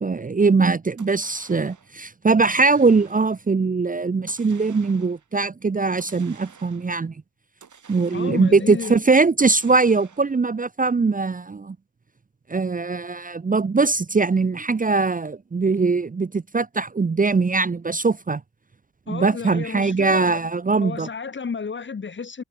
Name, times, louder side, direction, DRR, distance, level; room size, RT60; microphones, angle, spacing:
voice 1, 0.0-7.1 7.9-11.8 12.5-18.4 19.1-21.1, right 4 dB, 25° right, 0.6 m, -21 dB
sound 1, 1.0-1.9 2.4-3.5 4.3-5.3 6.0-7.0 7.6-8.7 9.4-10.5, right 6 dB, 70° right, 4.7 m, -50 dB
voice 2, 8.1-9.0 19.1-20.4 20.8-22.4, left 5 dB, 40° left, 0.9 m, -32 dB
wide cardioid pair, 165°, 31 cm